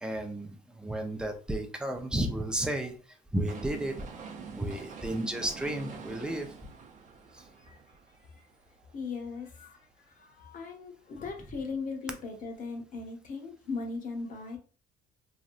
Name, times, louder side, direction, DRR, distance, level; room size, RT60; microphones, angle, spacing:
voice 1, 0.0-2.9 3.3-4.0 4.5-6.5, right 1 dB, 5° right, 4 dB, 0.5 m, -32 dB
sound 1, 3.5-9.5 9.9-10.0, right 5 dB, 45° right, 0.6 m, -46 dB
voice 2, 8.9-14.6, left 4 dB, 50° left, 3 dB, 0.9 m, -39 dB
3.1 x 2.6 x 2.5 m, 0.38 s
cardioid pair, 110°, 17 cm